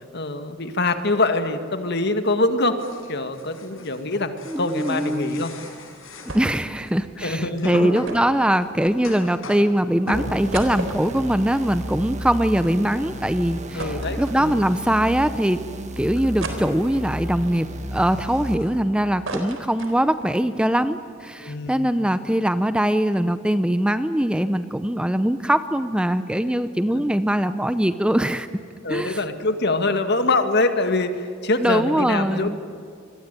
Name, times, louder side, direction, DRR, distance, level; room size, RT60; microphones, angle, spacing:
voice 1, 0.1-2.8 3.1-5.5 7.2-7.9 13.7-14.6 21.4-22.0 26.9-27.0 28.8-32.6, left 2 dB, 55° left, 8 dB, 2.0 m, -24 dB
sound 1, 2.8-7.0 7.3-10.9 11.1-11.4 11.7-12.1 12.3-20.3 20.6-21.0 21.2-22.2, left 1 dB, 75° left, 6.7 m, -39 dB
voice 2, 4.5-5.4 6.3-15.6 16.0-17.7 17.9-28.5 28.9-29.2 31.6-32.6, right 1 dB, 5° right, 11 dB, 0.7 m, -22 dB
sound 2, 6.3-6.7 7.0-7.1 8.0-9.3 9.8-9.9 10.3-12.7 13.1-13.2 13.8-14.9 15.4-15.5 16.4-17.2 17.8-18.8 19.0-20.4 20.7-20.8 21.1-21.3, right 2 dB, 70° right, 4.0 m, -35 dB
sound 3, 10.1-18.6, equal, 35° right, 1.9 m, -33 dB
27.0 x 22.0 x 9.2 m, 2.3 s
head